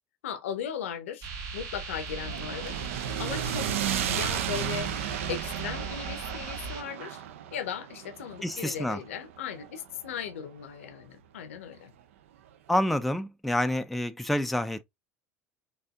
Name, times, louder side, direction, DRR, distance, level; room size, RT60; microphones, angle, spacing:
voice 1, 0.2-2.8 3.2-3.7 4.1-4.9 5.3-7.2 7.5-11.9, left 8 dB, 70° left, 0.7 m, -37 dB
sound 1, 1.2-6.8, right 4 dB, 45° right, 1.1 m, -38 dB
sound 2, 2.1-10.3, right 10 dB, 70° right, 0.5 m, -34 dB
voice 2, 8.4-9.0 12.7-14.8, left 1 dB, ahead, 0.4 m, -28 dB
4.1 x 2.6 x 2.3 m
figure-of-eight pair, 75°, 7 cm